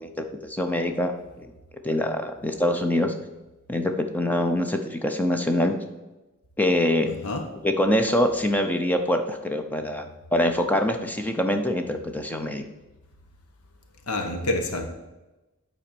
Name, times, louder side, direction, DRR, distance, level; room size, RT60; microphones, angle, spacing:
voice 1, 0.0-1.1 1.4-1.5 1.8-3.1 3.7-5.7 6.6-7.1 7.6-10.0 10.3-12.6, left 1 dB, 5° left, 5 dB, 0.7 m, -24 dB
voice 2, 7.1-7.4 14.1-14.9, left 2 dB, 80° left, 5 dB, 1.2 m, -28 dB
8.9 x 4.4 x 6.8 m, 1.1 s
head